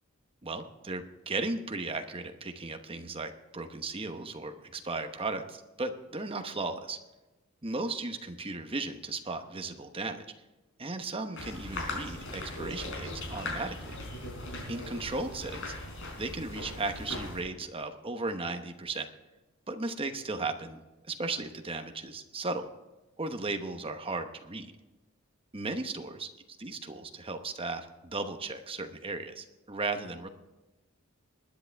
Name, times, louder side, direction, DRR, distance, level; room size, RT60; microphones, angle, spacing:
voice 1, 0.4-7.0 7.6-10.3 10.8-13.9 14.7-15.7 16.2-19.1 19.7-22.7 23.2-24.7 25.5-26.3 26.6-30.3, right 3 dB, 25° right, 6 dB, 1.0 m, -36 dB
sound 1, 11.4-17.4, left 2 dB, 65° left, 4.5 m, -39 dB
20.5 x 10.0 x 3.5 m, 1.1 s
head